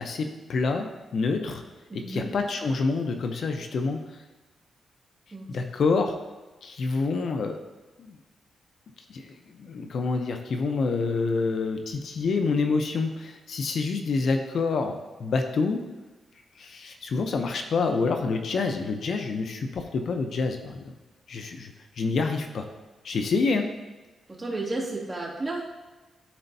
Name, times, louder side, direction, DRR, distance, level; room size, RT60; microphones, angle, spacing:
voice 1, 0.0-1.6 1.9-4.0 5.5-6.2 6.6-7.6 8.0-8.2 9.1-15.8 16.6-20.8 21.3-21.7 22.0-22.7 23.0-23.7, left 4 dB, 65° left, 5 dB, 0.6 m, -27 dB
voice 2, 1.9-2.3 5.3-5.5 24.3-25.6, right 2 dB, 25° right, -5 dB, 2.3 m, -32 dB
13.0 x 4.4 x 2.7 m, 1.2 s
cardioid pair, 105°, 0 cm